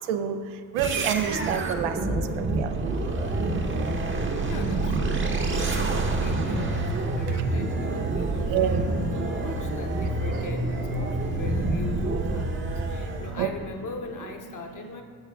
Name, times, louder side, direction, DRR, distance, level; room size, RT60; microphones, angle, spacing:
voice 1, 0.7-2.2 2.6-2.7 8.5-8.8 13.4-13.5, right 10 dB, 90° right, 8 dB, 0.6 m, -27 dB
sound 1, 0.8-13.4, right 2 dB, 25° right, 0.8 m, -27 dB
voice 2, 3.4-3.8 4.5-15.0, left 3 dB, 40° left, 4 dB, 0.9 m, -41 dB
12.0 x 6.5 x 2.3 m, 2.1 s
supercardioid pair, 55°, 50 cm